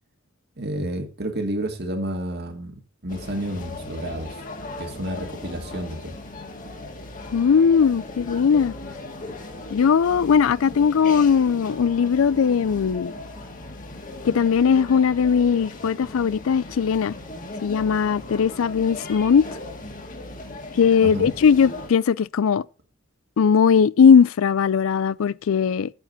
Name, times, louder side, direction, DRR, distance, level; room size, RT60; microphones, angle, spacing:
voice 1, 0.6-4.4 4.8-6.2 21.0-21.3, right 1 dB, 55° right, 2.2 m, -30 dB
sound 1, 3.1-21.9, left 2 dB, 40° left, 1.9 m, -38 dB
voice 2, 7.3-8.7 9.7-13.1 14.2-17.1 17.6-19.5 20.7-22.6 23.4-25.9, left 6 dB, 85° left, 0.4 m, -19 dB
8.9 x 8.2 x 4.0 m
head